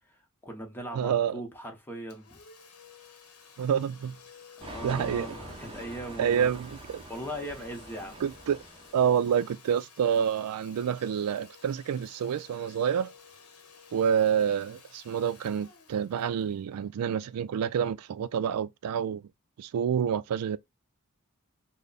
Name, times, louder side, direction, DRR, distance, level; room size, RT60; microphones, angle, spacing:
voice 1, 0.4-2.4 4.6-6.5 7.1-8.2, equal, 10° left, 0.8 m, -39 dB
voice 2, 0.9-1.4 3.6-4.2 4.8-5.3 6.2-7.0 8.2-8.6 8.9-13.1 13.9-19.2 19.6-20.6, right 8 dB, 85° right, 0.3 m, -28 dB
Domestic sounds home sounds, 2.1-17.6, left 6 dB, 85° left, 0.9 m, -54 dB
sound 1, 4.6-9.5, right 2 dB, 25° right, 0.7 m, -45 dB
3.3 x 2.1 x 3.9 m
head